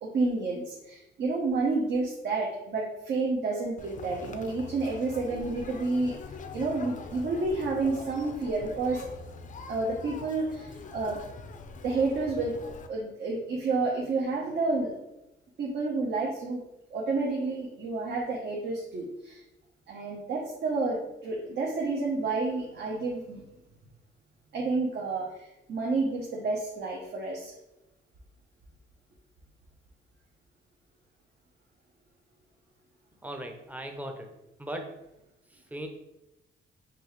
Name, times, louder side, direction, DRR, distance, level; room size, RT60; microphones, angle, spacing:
voice 1, 0.0-6.1 6.5-9.1 9.7-11.2 11.8-14.9 15.6-16.6 16.9-19.4 19.9-23.4 24.5-27.5, right 3 dB, 60° right, -3 dB, 0.8 m, -30 dB
Conversation, 3.8-12.9, left 4 dB, 40° left, 0.4 m, -43 dB
voice 2, 33.2-34.3 34.6-35.0 35.5-35.9, right 1 dB, 10° right, 4 dB, 0.6 m, -38 dB
5.2 x 2.4 x 3.1 m, 0.94 s
cardioid pair, 90°, 20 cm